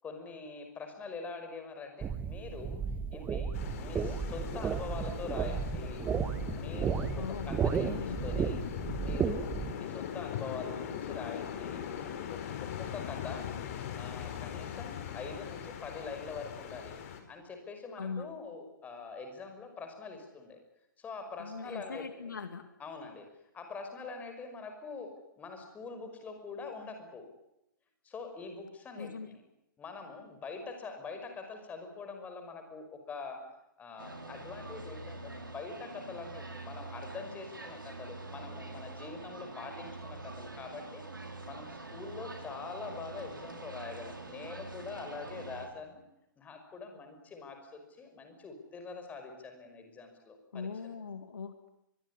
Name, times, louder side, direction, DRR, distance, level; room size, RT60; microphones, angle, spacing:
voice 1, 0.0-2.8 3.1-6.0 6.5-8.6 9.0-11.8 12.3-12.4 12.8-13.6 14.0-17.0 17.3-20.6 21.0-22.3 22.8-23.3 23.5-25.1 25.4-27.3 28.0-29.4 29.8-33.4 33.8-46.0 46.4-50.7, left 4 dB, 15° left, 6 dB, 5.8 m, -44 dB
sound 1, 2.0-9.7, right 7 dB, 15° right, 1.4 m, -34 dB
sound 2, 3.5-17.2, left 9 dB, 40° left, 4.5 m, -40 dB
voice 2, 7.1-7.5 7.8-8.2 18.0-18.3 21.4-22.6 29.0-29.3 50.5-51.7, left 5 dB, 65° left, 9 dB, 2.4 m, -40 dB
sound 3, 34.0-45.7, right 2 dB, 75° right, 5.4 m, -45 dB
24.0 x 22.0 x 10.0 m, 0.84 s
figure-of-eight pair, 120°, 11 cm